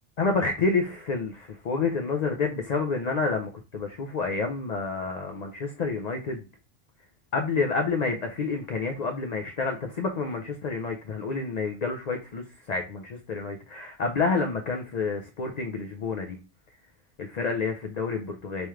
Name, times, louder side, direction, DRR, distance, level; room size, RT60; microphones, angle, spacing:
voice 1, 0.2-6.4 7.3-16.4 17.2-18.7, left 4 dB, 50° left, 3 dB, 0.5 m, -29 dB
3.5 x 3.0 x 3.1 m, 0.30 s
omnidirectional pair, 1.1 m